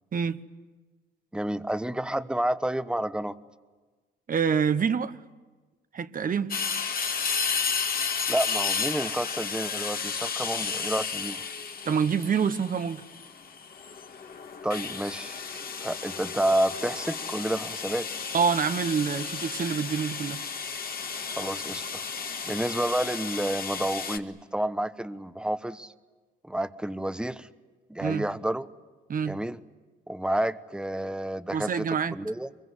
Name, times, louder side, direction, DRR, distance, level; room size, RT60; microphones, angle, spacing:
voice 1, 1.3-3.3 8.3-11.4 14.6-15.4 15.8-18.1 21.4-22.0 22.4-25.9 26.4-27.5 27.9-28.7 29.3-29.6 30.1-31.9 32.1-32.5, right 1 dB, 5° right, 1.1 m, -30 dB
voice 2, 4.3-5.2 5.9-6.5 11.8-13.0 18.3-20.4 28.0-28.3 29.1-29.4 31.5-32.1, right 6 dB, 45° right, 1.2 m, -26 dB
sound 1, 6.5-24.2, left 6 dB, 50° left, 1.9 m, -33 dB
24.5 x 23.0 x 9.7 m
cardioid pair, 90°, 20 cm